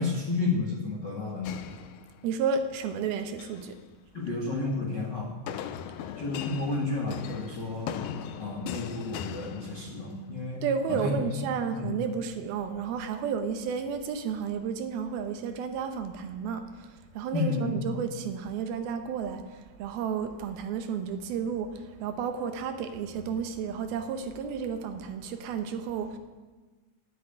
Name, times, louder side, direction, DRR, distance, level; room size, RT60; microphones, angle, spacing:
voice 1, 0.0-1.6 4.1-5.3 6.2-7.9 8.4-10.6 10.9-11.5 11.7-11.9 17.3-17.9, left 3 dB, 55° left, -1 dB, 1.2 m, -31 dB
sound 1, 1.4-2.5 3.2-3.7 5.5-10.3, left 9 dB, 80° left, 2.0 m, -39 dB
voice 2, 2.2-3.8 10.6-16.9 17.1-26.2, right 6 dB, 75° right, 7 dB, 2.7 m, -32 dB
11.5 x 7.9 x 9.1 m, 1.3 s
omnidirectional pair, 4.5 m